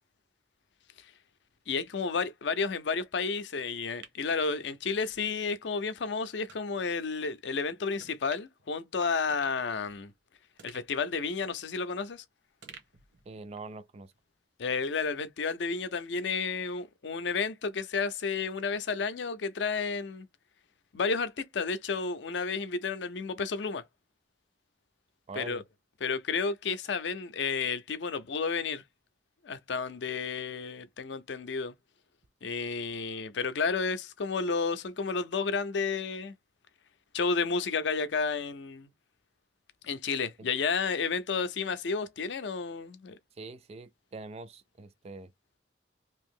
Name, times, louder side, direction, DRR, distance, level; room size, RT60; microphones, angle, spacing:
voice 1, 1.7-10.1 10.6-12.2 14.6-20.3 20.9-23.8 25.4-25.6 26.0-28.8 29.4-31.7 32.4-36.3 37.1-38.9 39.8-43.2, left 5 dB, 70° left, 0.5 m, -31 dB
sound 1, 3.6-5.2 5.6-5.7 6.5-6.7 7.2-7.4 8.0-8.7 9.0-9.1 9.3-10.2 10.6-12.2 12.6-13.8 14.1-14.2, right 6 dB, 80° right, 1.0 m, -54 dB
voice 2, 13.3-14.1 25.3-25.6 40.4-40.5 43.4-45.3, right 3 dB, 35° right, 0.3 m, -44 dB
2.9 x 2.6 x 3.6 m
head